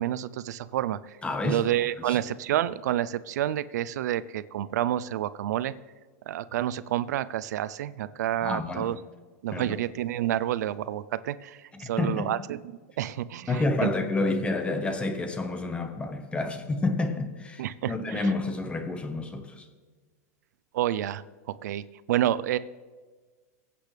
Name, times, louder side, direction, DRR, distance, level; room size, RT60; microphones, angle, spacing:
voice 1, 0.0-1.2 1.4-5.7 6.3-9.0 9.4-12.6 13.0-13.9 14.2-14.5 17.6-18.3 20.7-21.8 22.1-22.6, right 12 dB, 80° right, 0.5 m, -29 dB
voice 2, 1.2-1.6 2.1-2.2 8.4-8.9 9.5-9.8 11.7-12.3 13.5-19.6, left 2 dB, 10° left, 1.3 m, -29 dB
22.5 x 8.4 x 3.4 m
supercardioid pair, 140°, 9 cm